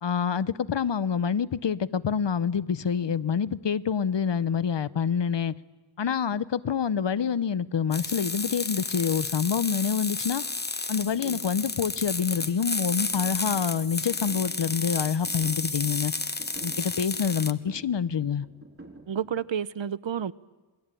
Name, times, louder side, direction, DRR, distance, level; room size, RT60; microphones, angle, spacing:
voice 1, 0.0-5.5 6.0-10.4 10.9-16.1 16.6-18.5, left 7 dB, 60° left, 0.8 m, -27 dB
sound 1, 7.9-17.5, left 3 dB, 20° left, 0.9 m, -32 dB
sound 2, 10.9-19.5, right 2 dB, 25° right, 3.9 m, -49 dB
voice 2, 19.1-20.3, right 8 dB, 65° right, 0.8 m, -30 dB
27.5 x 22.5 x 9.1 m
wide cardioid pair, 90°, 48 cm